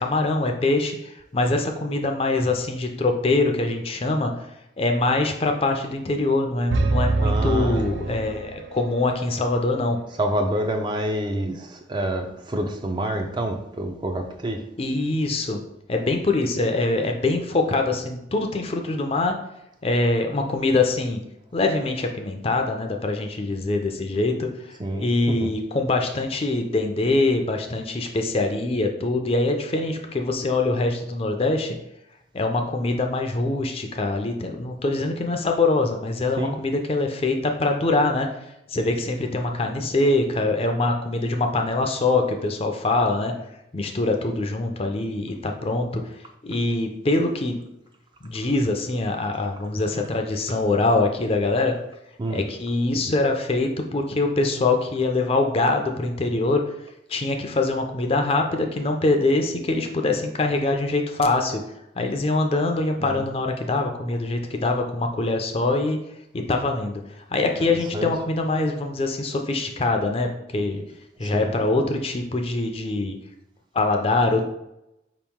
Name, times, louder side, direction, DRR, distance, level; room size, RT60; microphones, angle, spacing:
voice 1, 0.0-4.3 4.8-10.0 14.8-15.6 15.9-19.4 19.8-21.2 21.5-31.8 32.3-38.3 38.7-43.3 43.7-46.0 46.4-47.6 48.2-51.7 52.3-56.6 57.1-61.6 62.0-66.0 66.3-67.0 67.3-70.8 71.2-73.2 73.7-74.4, left 2 dB, 30° left, 4 dB, 0.4 m, -23 dB
sound 1, 6.7-8.8, right 3 dB, 85° right, 0.4 m, -24 dB
voice 2, 7.2-7.9 10.2-14.6 24.8-25.5 36.4-36.6 52.2-52.4 63.0-63.2 67.7-68.1 71.2-71.5, right 1 dB, 25° right, 4 dB, 0.4 m, -27 dB
4.6 x 3.0 x 3.5 m, 0.84 s
head